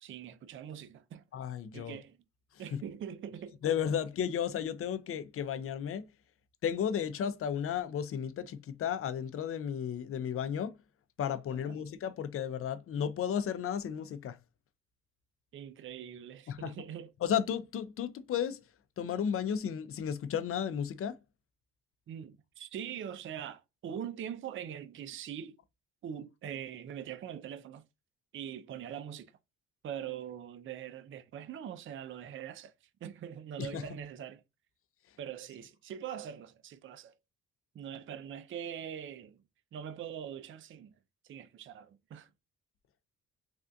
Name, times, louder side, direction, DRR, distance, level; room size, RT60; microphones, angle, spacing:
voice 1, 0.0-1.2 1.7-2.2 2.6-3.6 11.5-11.8 15.5-17.1 22.1-25.6 26.0-27.8 28.3-29.4 29.8-32.7 33.0-34.4 35.2-37.1 37.7-39.4 39.7-40.9 41.2-42.3, right 9 dB, 45° right, 0.4 m, -43 dB
voice 2, 1.3-2.0 2.7-2.8 3.6-6.1 6.6-10.8 11.2-14.4 16.5-16.7 17.2-18.6 19.0-21.2 33.6-33.8, left 8 dB, 50° left, 0.5 m, -33 dB
3.4 x 2.4 x 2.6 m
cardioid pair, 90°, 30 cm